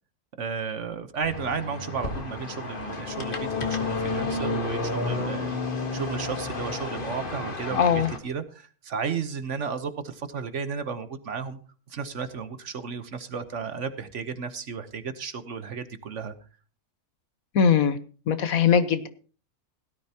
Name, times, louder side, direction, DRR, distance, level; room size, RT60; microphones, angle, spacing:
voice 1, 0.4-11.6 11.9-16.3, right 6 dB, 55° right, 11 dB, 1.3 m, -33 dB
sound 1, 1.2-8.2, left 3 dB, 35° left, 1.7 m, -31 dB
voice 2, 7.7-8.1 17.5-18.0 18.3-19.1, left 7 dB, 70° left, 12 dB, 1.4 m, -21 dB
17.0 x 13.0 x 2.9 m, 0.38 s
omnidirectional pair, 1.5 m